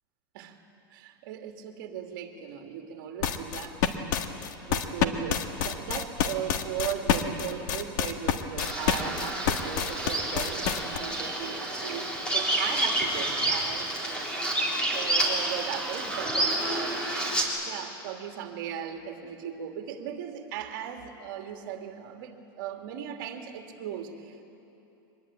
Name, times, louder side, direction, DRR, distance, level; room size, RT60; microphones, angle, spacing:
voice 1, 0.9-3.8 4.6-14.2 14.9-17.0 17.7-24.4, right 9 dB, 55° right, 4 dB, 2.5 m, -37 dB
sound 1, 3.2-11.0, left 9 dB, 60° left, 1.5 m, -27 dB
Bird vocalization bird call bird song, 8.6-17.4, right 1 dB, 10° left, 3.5 m, -29 dB
24.0 x 21.0 x 8.9 m, 2.9 s
supercardioid pair, 160°, 12 cm